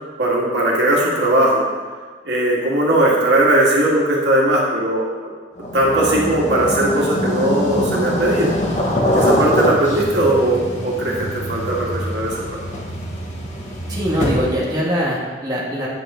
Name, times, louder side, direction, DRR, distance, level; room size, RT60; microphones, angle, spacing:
voice 1, 0.2-1.6 2.2-5.3 5.7-8.6 9.1-12.4, right 1 dB, 75° right, -4 dB, 2.2 m, -18 dB
sound 1, 5.6-14.7, equal, 40° left, 1.4 m, -23 dB
voice 2, 13.9-15.9, equal, 20° right, -5 dB, 1.6 m, -22 dB
9.1 x 7.9 x 3.8 m, 1.4 s
head